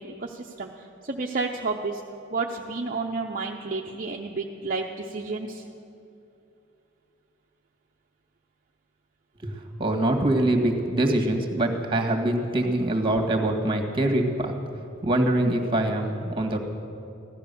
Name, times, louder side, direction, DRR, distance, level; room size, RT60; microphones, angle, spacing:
voice 1, 0.0-2.0 2.3-5.7, right 3 dB, 45° right, 1 dB, 0.7 m, -31 dB
voice 2, 9.8-14.5 15.0-16.6, right 1 dB, 25° right, 3 dB, 1.8 m, -24 dB
16.0 x 12.0 x 6.9 m, 2.8 s
head